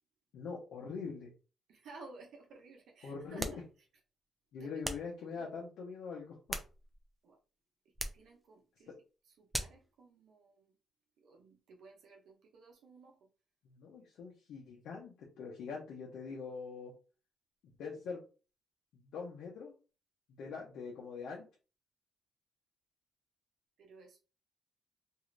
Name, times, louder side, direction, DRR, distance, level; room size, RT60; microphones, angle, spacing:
voice 1, 0.3-1.3 3.0-3.7 4.5-6.4 8.9-9.0 13.6-16.9 17.8-18.2 18.9-19.7 20.4-21.5, left 5 dB, 80° left, -3 dB, 0.8 m, -43 dB
voice 2, 1.7-3.6 4.6-4.7 5.3-5.5 7.2-7.4 8.1-8.9 9.4-10.6 11.2-13.1 23.8-24.2, right 3 dB, 75° right, 1 dB, 0.8 m, -55 dB
sound 1, 3.4-3.7 4.8-5.1 6.2-7.1 7.9-8.3 9.5-9.9, right 1 dB, 15° right, 0.5 m, -40 dB
2.7 x 2.4 x 3.2 m, 0.34 s
cardioid pair, 90°, 0 cm